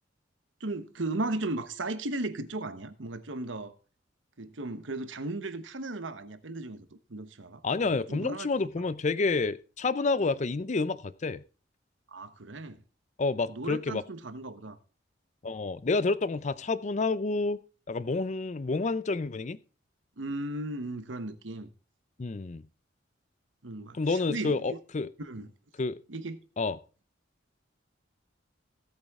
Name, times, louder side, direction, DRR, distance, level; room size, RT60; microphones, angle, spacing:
voice 1, 0.6-3.7 4.4-8.7 12.1-12.8 13.5-14.8 20.2-21.7 23.6-24.8 25.2-25.5 26.1-26.4, right 2 dB, 75° right, 1.1 m, -36 dB
voice 2, 7.6-11.4 13.2-14.0 15.4-17.6 17.9-19.6 22.2-22.6 23.9-25.1 25.8-26.0 26.6-26.8, left 3 dB, 40° left, 0.5 m, -29 dB
17.0 x 8.3 x 3.6 m
head